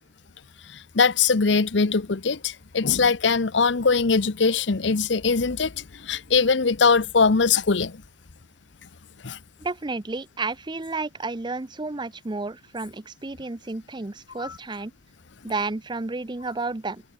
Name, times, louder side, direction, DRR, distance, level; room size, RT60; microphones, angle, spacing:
voice 1, 0.9-8.0 9.2-9.4 14.4-14.5, left 4 dB, 65° left, 0.8 m, -21 dB
voice 2, 9.6-14.9 15.4-17.0, right 3 dB, 25° right, 0.7 m, -31 dB
head